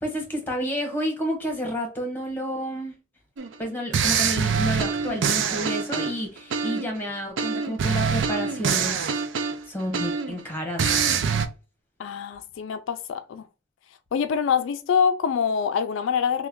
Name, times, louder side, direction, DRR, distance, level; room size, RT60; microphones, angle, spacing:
voice 1, 0.0-2.9 3.6-9.0 9.7-11.0, equal, 10° left, 1.0 m, -30 dB
sound 1, 3.4-3.5 3.9-7.0 7.4-10.4 10.8-11.5, right 6 dB, 70° right, 0.4 m, -25 dB
voice 2, 12.0-13.4 14.1-16.5, left 7 dB, 75° left, 0.3 m, -25 dB
3.1 x 2.2 x 3.5 m
head